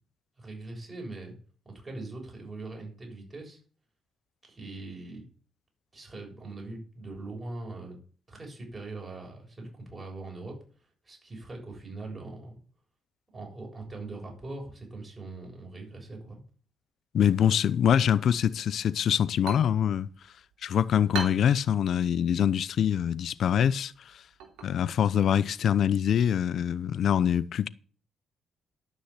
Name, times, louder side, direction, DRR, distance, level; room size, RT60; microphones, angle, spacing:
voice 1, 0.4-1.3 1.7-3.6 4.4-5.2 5.9-8.0 8.3-10.6 11.0-12.5 13.3-16.4, right 2 dB, 25° right, 7.2 m, -41 dB
voice 2, 17.1-20.1 20.6-23.9 24.6-27.7, left 9 dB, 65° left, 0.6 m, -24 dB
sound 1, 19.1-26.6, right 6 dB, 90° right, 2.9 m, -44 dB
13.0 x 6.3 x 8.3 m
cardioid pair, 90°, 0 cm